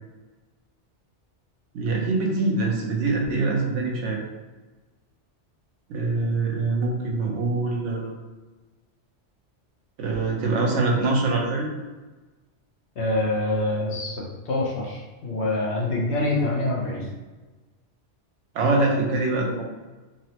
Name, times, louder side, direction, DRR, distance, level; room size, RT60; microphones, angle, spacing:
voice 1, 1.7-4.2 5.9-8.1 10.0-11.7 18.5-19.6, right 3 dB, 90° right, 0 dB, 1.0 m, -24 dB
voice 2, 13.0-17.1, left 2 dB, 70° left, -3 dB, 0.9 m, -26 dB
3.8 x 2.0 x 2.8 m, 1.2 s
omnidirectional pair, 1.2 m